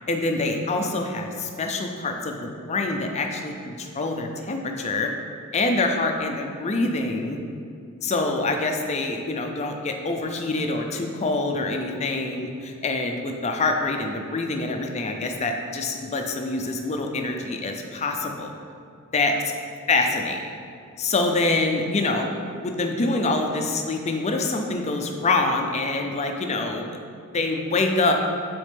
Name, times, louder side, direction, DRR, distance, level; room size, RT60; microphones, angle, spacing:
voice 1, 0.1-5.1 5.5-7.4 8.0-18.5 19.1-19.3 19.9-20.5 21.0-22.3 22.6-26.9 27.3-28.1, left 3 dB, 30° left, 3 dB, 0.5 m, -25 dB
7.3 x 4.2 x 3.4 m, 2.4 s
head